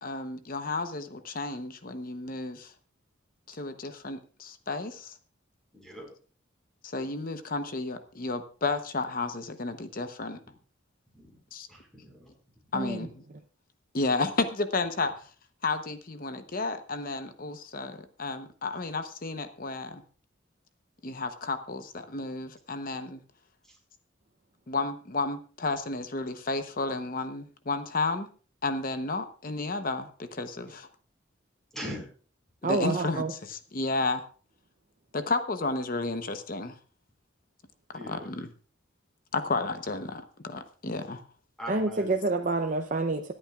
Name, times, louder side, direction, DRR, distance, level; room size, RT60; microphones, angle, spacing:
voice 1, 0.0-2.7 3.5-5.1 6.8-10.4 11.5-11.7 12.7-13.2 13.9-15.1 15.6-20.0 21.0-23.2 24.7-28.3 28.6-30.9 32.6-34.2 35.1-36.7 38.1-38.5 39.3-41.2, left 3 dB, 45° left, 0.9 m, -32 dB
voice 2, 5.7-6.1 11.1-11.3 11.7-12.3 23.6-23.8 30.6-30.8 31.7-32.1 37.9-38.3 41.6-42.1, equal, 5° left, 4.6 m, -41 dB
voice 3, 12.7-13.1 32.6-33.3 41.7-43.3, right 3 dB, 40° right, 0.6 m, -28 dB
25.5 x 8.8 x 2.4 m
head